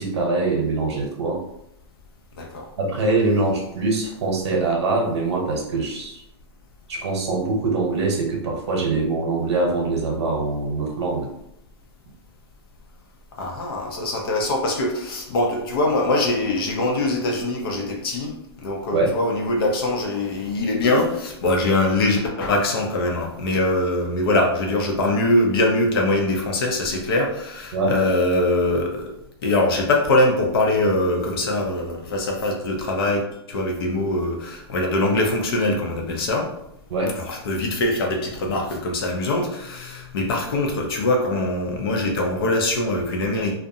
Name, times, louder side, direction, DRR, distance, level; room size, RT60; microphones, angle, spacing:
voice 1, 0.0-1.4 2.8-6.2 6.9-11.3 18.9-19.2 27.7-27.9 36.9-37.1, right 3 dB, 75° right, 0 dB, 0.9 m, -23 dB
voice 2, 2.3-2.7 13.4-29.1 29.4-33.2 33.5-36.5 37.3-43.5, left 2 dB, 60° left, 1 dB, 0.6 m, -22 dB
2.4 x 2.1 x 2.7 m, 0.80 s
supercardioid pair, 170°, 14 cm